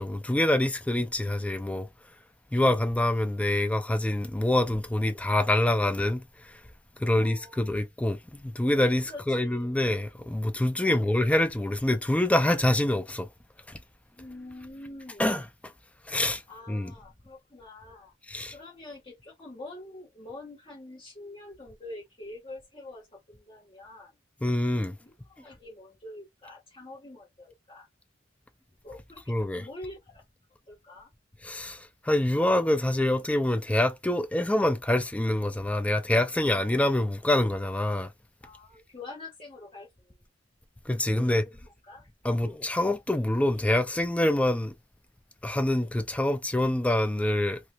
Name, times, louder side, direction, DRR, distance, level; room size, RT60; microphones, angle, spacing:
voice 1, 0.0-1.9 2.5-6.6 7.0-13.3 13.7-13.8 15.2-15.7 16.1-16.4 16.7-16.9 18.3-18.5 24.4-24.9 29.3-29.7 31.4-38.1 40.9-41.4 42.2-44.7 45.4-47.6, left 1 dB, 5° left, 0.3 m, -26 dB
voice 2, 7.1-7.8 9.0-9.7 10.8-11.3 14.2-15.3 16.5-18.1 18.5-24.1 25.0-27.9 28.8-30.2 30.7-31.1 38.4-40.1 41.0-42.6, left 2 dB, 30° left, 1.2 m, -46 dB
3.2 x 2.9 x 2.2 m
head